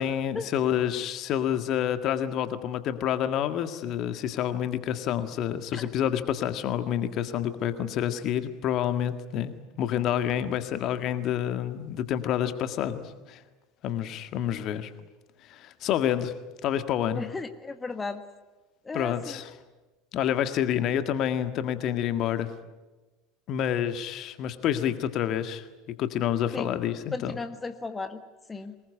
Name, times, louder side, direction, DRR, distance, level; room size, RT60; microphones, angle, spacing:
voice 1, 0.0-13.4 13.8-14.9 15.4-16.3 16.6-17.2 18.9-19.5 20.1-22.5 23.5-25.7 26.0-27.4, left 10 dB, 45° left, 10 dB, 1.8 m, -28 dB
voice 2, 17.1-18.2 18.8-19.4 26.5-26.7 27.1-28.2 28.5-28.7, left 3 dB, 20° left, 9 dB, 1.5 m, -35 dB
23.5 x 20.5 x 9.7 m, 1.2 s
figure-of-eight pair, 75°, 0 cm